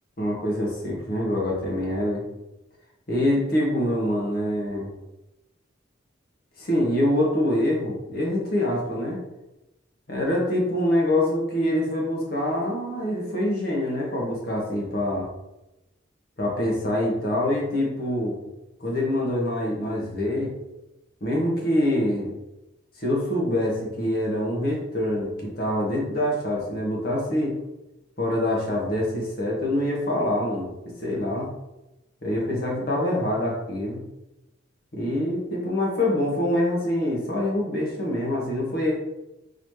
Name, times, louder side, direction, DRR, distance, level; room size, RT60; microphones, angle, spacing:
voice 1, 0.2-2.2 3.1-4.9 6.6-9.2 10.1-15.3 16.4-18.4 18.8-20.5 21.2-22.3 23.0-27.6 28.2-30.7 31.0-31.5 32.2-34.0 34.9-38.9, left 1 dB, 50° left, -3 dB, 1.1 m, -25 dB
4.0 x 2.8 x 3.2 m, 0.93 s
head